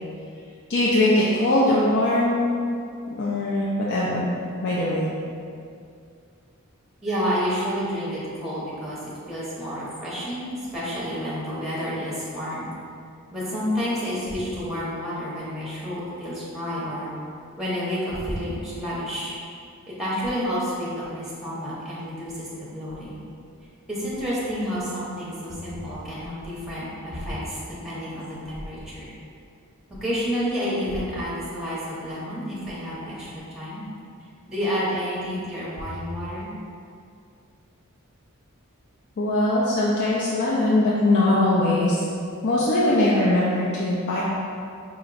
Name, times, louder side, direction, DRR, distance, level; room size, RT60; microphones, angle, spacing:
voice 1, 0.7-2.5 3.2-4.4 4.6-5.1 39.2-42.0 42.4-44.2, left 1 dB, 50° left, -6 dB, 0.4 m, -21 dB
voice 2, 7.0-12.7 13.3-17.1 17.6-19.3 20.0-23.2 23.9-27.6 27.8-29.1 29.9-33.8 34.5-36.5, equal, 5° right, -8 dB, 0.8 m, -30 dB
5.1 x 2.9 x 2.5 m, 2.4 s
head